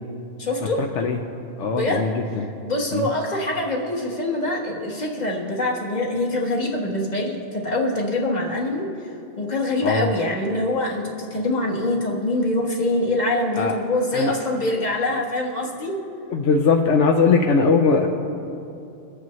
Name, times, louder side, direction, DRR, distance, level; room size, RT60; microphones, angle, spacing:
voice 1, 0.4-0.8 1.7-2.1 2.6-8.8 9.4-15.9, left 1 dB, 35° left, 0 dB, 1.5 m, -24 dB
voice 2, 1.6-2.5 2.9-3.1 9.8-10.1 13.6-13.7 14.1-14.3 16.3-18.1, left 4 dB, 75° left, 2 dB, 1.0 m, -20 dB
23.5 x 8.3 x 3.1 m, 2.6 s
omnidirectional pair, 1.3 m